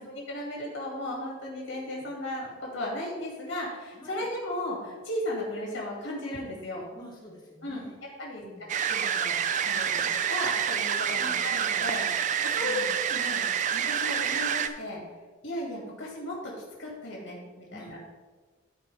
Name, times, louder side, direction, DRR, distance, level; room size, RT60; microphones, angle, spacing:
voice 1, 0.0-6.8 7.6-7.9 8.2-13.4 13.7-15.0 15.4-18.0, left 1 dB, 80° left, -3 dB, 2.2 m, -36 dB
voice 2, 3.9-4.3 6.9-8.0 8.4-8.7 11.1-11.4 12.6-13.0 17.7-18.1, left 1 dB, 20° left, -3 dB, 1.0 m, -47 dB
sound 1, 8.7-14.7, right 8 dB, 40° right, 0.3 m, -28 dB
13.0 x 4.6 x 3.4 m, 1.4 s
head